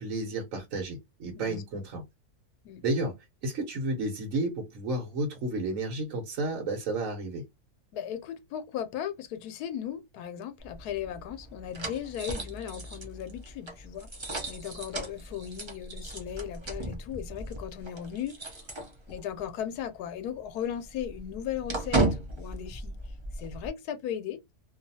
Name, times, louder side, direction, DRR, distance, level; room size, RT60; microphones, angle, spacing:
voice 1, 0.0-2.0 2.8-3.1 3.4-7.4, right 2 dB, 60° right, 1.1 m, -32 dB
voice 2, 7.9-14.1 14.5-18.6 19.1-22.1 22.4-22.9 23.4-24.4, left 10 dB, 85° left, 1.1 m, -37 dB
sound 1, 10.6-19.4 19.7-19.9 20.2-23.7, right 2 dB, 40° right, 0.4 m, -35 dB
2.6 x 2.4 x 2.6 m
omnidirectional pair, 1.6 m